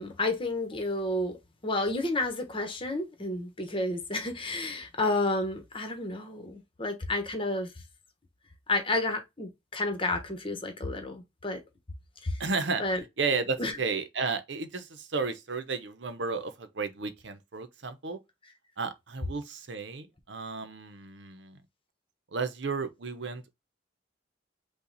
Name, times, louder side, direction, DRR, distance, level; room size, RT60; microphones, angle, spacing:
voice 1, 0.0-1.4 1.6-7.7 8.7-11.6 12.2-12.4 12.8-13.0 13.6-13.8, left 2 dB, 30° left, 1.2 m, -31 dB
voice 2, 12.4-18.2 18.8-21.6 22.3-23.5, right 4 dB, 75° right, 0.8 m, -33 dB
5.7 x 2.4 x 4.0 m
head